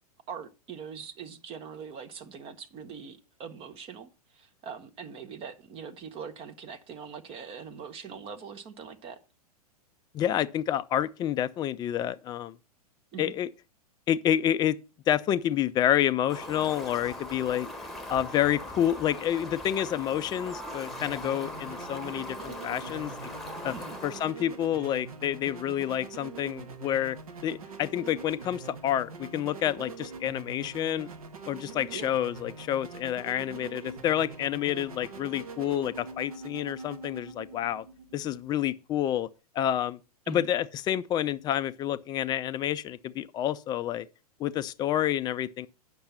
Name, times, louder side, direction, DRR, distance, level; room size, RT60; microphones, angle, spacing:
voice 1, 0.3-9.2 13.1-13.3 23.7-24.0 31.9-32.1 40.3-40.5, right 6 dB, 30° right, 0.9 m, -42 dB
voice 2, 10.1-12.6 13.2-13.5 14.1-14.8 15.1-17.7 18.1-23.3 23.6-23.7 24.0-27.2 27.4-31.1 31.5-37.8 38.1-39.3 39.5-40.0 40.3-44.1 44.4-45.7, left 11 dB, 20° left, 0.4 m, -28 dB
Fowl, 16.3-24.3, left 1 dB, ahead, 1.3 m, -40 dB
sound 1, 20.9-38.6, right 4 dB, 65° right, 1.4 m, -44 dB
8.6 x 6.0 x 5.6 m
figure-of-eight pair, 100°, 20 cm